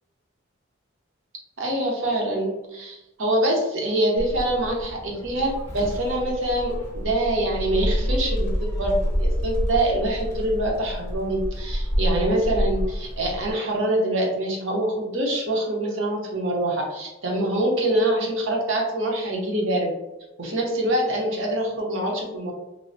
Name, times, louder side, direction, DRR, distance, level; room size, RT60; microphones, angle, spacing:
voice 1, 1.6-19.9 20.4-22.5, right 1 dB, 80° right, 0 dB, 0.7 m, -25 dB
Gull seagull, 4.2-13.5, equal, 15° left, 0.6 m, -28 dB
3.1 x 2.0 x 2.6 m, 0.96 s
head